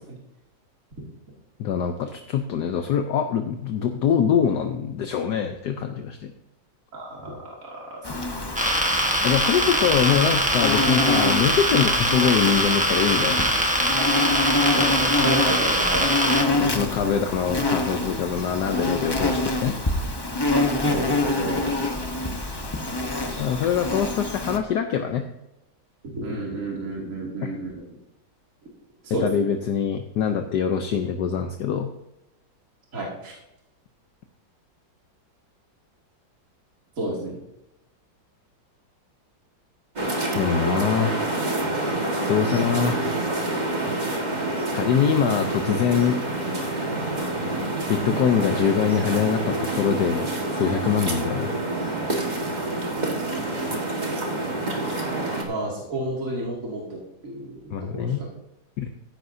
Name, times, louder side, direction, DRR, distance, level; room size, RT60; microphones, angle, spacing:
voice 1, 1.6-6.3 9.2-13.4 16.5-19.7 23.4-25.2 27.4-27.5 29.1-31.9 40.3-41.2 42.3-43.1 44.7-46.2 47.9-51.5 57.7-58.2 58.8-58.9, left 7 dB, 65° left, 5 dB, 1.3 m, -24 dB
voice 2, 6.9-8.0 14.7-17.1 20.7-21.7 26.2-27.8 29.0-29.4 32.9-33.3 37.0-37.3 55.5-58.3, right 1 dB, 45° right, -3 dB, 2.8 m, -31 dB
Insect, 8.0-24.6, left 2 dB, 20° left, 0.6 m, -26 dB
sound 1, 8.6-16.4, equal, 5° right, 0.8 m, -22 dB
sound 2, 40.0-55.4, right 2 dB, 25° right, 1.7 m, -27 dB
15.5 x 10.5 x 2.7 m, 0.88 s
omnidirectional pair, 2.0 m